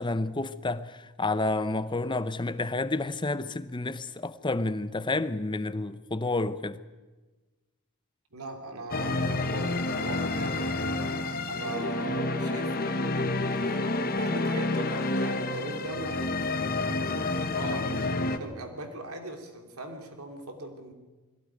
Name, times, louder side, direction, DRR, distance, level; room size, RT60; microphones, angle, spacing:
voice 1, 0.0-6.8, left 2 dB, 20° left, 0.7 m, -30 dB
voice 2, 8.3-11.1 11.5-13.8 14.1-16.5 17.3-20.9, right 2 dB, 75° right, 3.0 m, -40 dB
sound 1, 8.9-18.4, left 2 dB, 40° left, 1.3 m, -29 dB
21.5 x 16.5 x 9.4 m
head